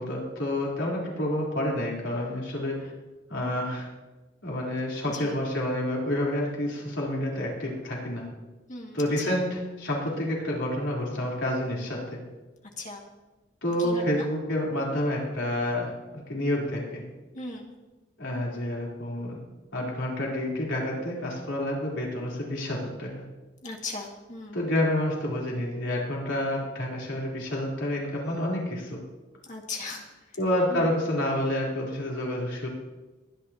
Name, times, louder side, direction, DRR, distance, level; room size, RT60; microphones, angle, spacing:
voice 1, 0.0-2.9 3.3-3.9 4.4-8.2 8.9-12.2 13.6-17.0 18.2-19.4 19.7-23.2 24.5-29.0 30.4-32.7, left 1 dB, 85° left, -3 dB, 3.7 m, -29 dB
voice 2, 8.7-9.4 12.8-13.0 13.8-14.3 17.3-17.7 23.6-24.6 29.4-30.0 30.7-30.9, left 3 dB, 45° left, 0 dB, 2.0 m, -38 dB
22.5 x 10.0 x 2.9 m, 1.1 s
head